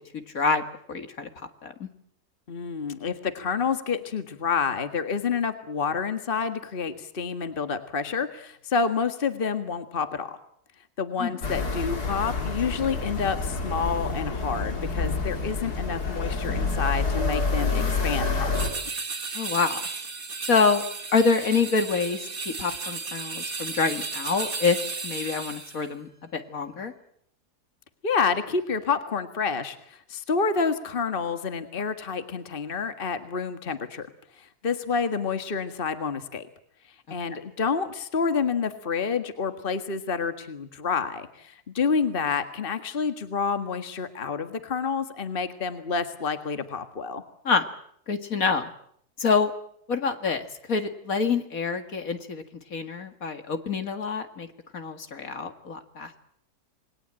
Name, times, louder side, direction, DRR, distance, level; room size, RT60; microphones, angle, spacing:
voice 1, 0.1-0.6 0.9-1.3 1.6-1.9 11.2-11.4 19.3-19.8 20.5-20.8 21.1-24.8 25.0-26.9 37.1-37.2 47.4-47.6 48.1-48.7 49.2-49.5 49.9-52.4 52.7-54.5 54.7-56.2, left 4 dB, 65° left, 8 dB, 2.3 m, -26 dB
voice 2, 2.5-10.4 11.0-18.8 28.0-34.1 34.4-36.5 37.1-47.2, left 5 dB, 35° left, 9 dB, 1.8 m, -28 dB
sound 1, 11.4-18.7, left 3 dB, 90° left, 3.3 m, -28 dB
sound 2, 18.5-25.8, right 4 dB, 65° right, 2.7 m, -34 dB
28.0 x 21.0 x 8.9 m, 0.69 s
omnidirectional pair, 1.6 m